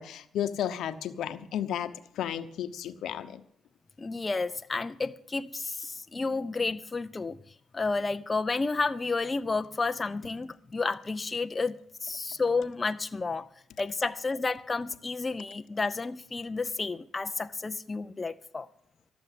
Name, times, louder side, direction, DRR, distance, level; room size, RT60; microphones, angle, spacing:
voice 1, 0.0-3.4, left 10 dB, 75° left, 11 dB, 0.9 m, -33 dB
voice 2, 4.0-7.4 7.7-13.5 13.8-18.7, left 3 dB, 25° left, 10 dB, 0.5 m, -31 dB
13.0 x 7.1 x 9.9 m, 0.69 s
cardioid pair, 90°, 0 cm